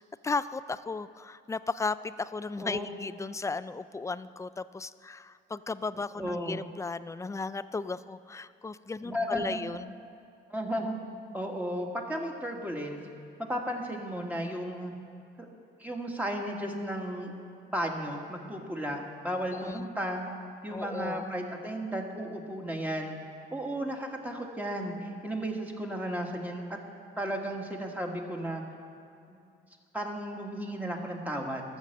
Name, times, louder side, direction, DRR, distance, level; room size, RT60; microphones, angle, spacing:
voice 1, 0.0-10.0 19.5-19.9 20.7-21.3, left 4 dB, 15° left, 15 dB, 0.3 m, -35 dB
voice 2, 6.2-6.6 9.0-9.6 10.5-10.9 11.3-13.0 13.5-14.9 15.4-15.5 15.8-17.3 17.7-20.2 20.6-23.1 23.5-26.8 27.2-28.6 29.3-29.4 29.9-31.6, equal, 10° right, 1 dB, 1.6 m, -34 dB
13.5 x 7.2 x 6.5 m, 2.5 s
cardioid pair, 90°, 20 cm